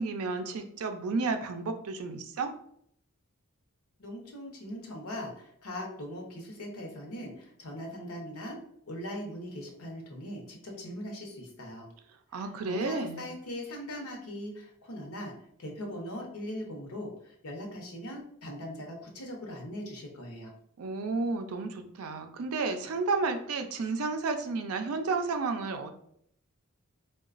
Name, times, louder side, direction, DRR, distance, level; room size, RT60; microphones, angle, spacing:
voice 1, 0.0-2.5 12.3-13.3 20.8-25.9, right 3 dB, 80° right, 7 dB, 0.4 m, -32 dB
voice 2, 4.0-8.6 8.9-11.9 12.3-20.5, equal, 85° left, 1 dB, 0.8 m, -40 dB
3.8 x 2.3 x 2.4 m, 0.68 s
head